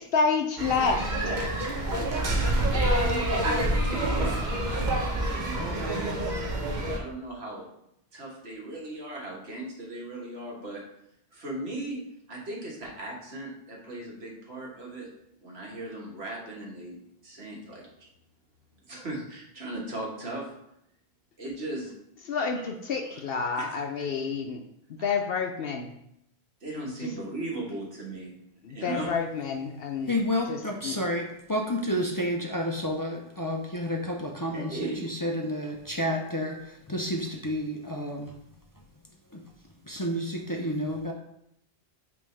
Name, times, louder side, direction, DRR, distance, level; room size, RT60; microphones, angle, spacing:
voice 1, 0.1-1.0 22.3-24.6 25.0-25.9 28.6-30.1 30.5-31.0, left 5 dB, 65° left, 3 dB, 0.8 m, -28 dB
sound 1, 0.6-7.0, right 1 dB, 50° right, 1.0 m, -27 dB
voice 2, 2.3-7.7 8.1-10.8 11.3-12.0 12.3-15.1 15.4-17.0 17.2-17.9 18.9-20.5 21.4-21.9 23.1-23.2 23.5-23.6 25.0-25.1 26.6-28.3 28.7-29.1 34.5-35.1, right 2 dB, 75° right, -3 dB, 1.8 m, -38 dB
voice 3, 30.1-36.6 36.9-38.3 39.3-39.4 39.9-41.1, equal, 25° left, 1 dB, 0.5 m, -30 dB
8.7 x 3.4 x 3.3 m, 0.78 s
omnidirectional pair, 1.1 m